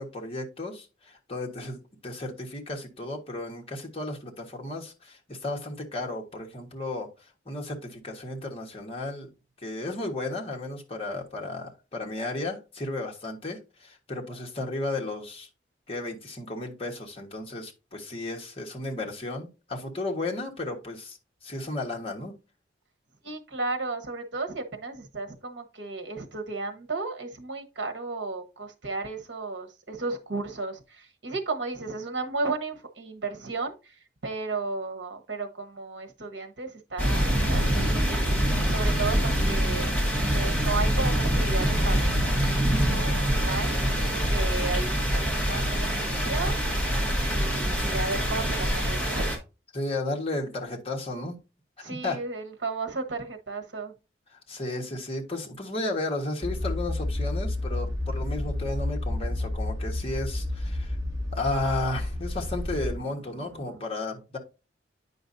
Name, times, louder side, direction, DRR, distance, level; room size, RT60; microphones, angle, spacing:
voice 1, 0.0-9.3 9.6-15.5 15.9-22.3 49.7-51.3 51.8-52.2 54.5-61.0 61.3-64.4, left 2 dB, 30° left, 1.4 m, -34 dB
voice 2, 23.2-38.3 38.7-39.9 40.3-46.9 47.2-49.4 51.8-53.9 63.3-63.8, right 3 dB, 70° right, 1.2 m, -34 dB
sound 1, 37.0-49.4, equal, 5° left, 1.7 m, -25 dB
sound 2, 56.4-63.0, left 1 dB, 20° right, 2.0 m, -30 dB
9.2 x 5.2 x 2.7 m
head